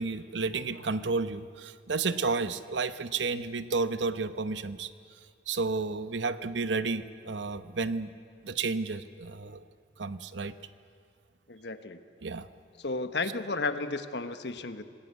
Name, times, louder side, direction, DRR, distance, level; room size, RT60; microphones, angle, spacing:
voice 1, 0.0-4.9 5.5-8.1 8.4-9.6 10.0-10.5 12.2-12.5, right 4 dB, 90° right, 12 dB, 0.9 m, -31 dB
voice 2, 11.5-12.0 12.8-14.8, left 3 dB, 70° left, 9 dB, 1.3 m, -33 dB
27.0 x 18.5 x 8.3 m, 2.2 s
head